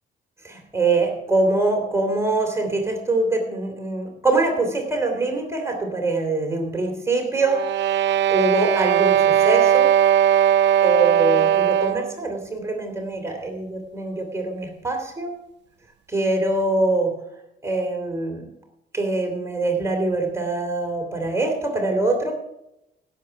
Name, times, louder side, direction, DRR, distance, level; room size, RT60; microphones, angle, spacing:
voice 1, 0.4-7.6 8.0-9.9 10.8-15.3 16.1-17.1 17.6-18.5 18.9-22.3, right 2 dB, 15° right, 2 dB, 3.1 m, -24 dB
sound 1, 7.4-12.2, right 10 dB, 65° right, 0.5 m, -18 dB
16.5 x 7.4 x 5.9 m, 0.85 s
cardioid pair, 90°, 20 cm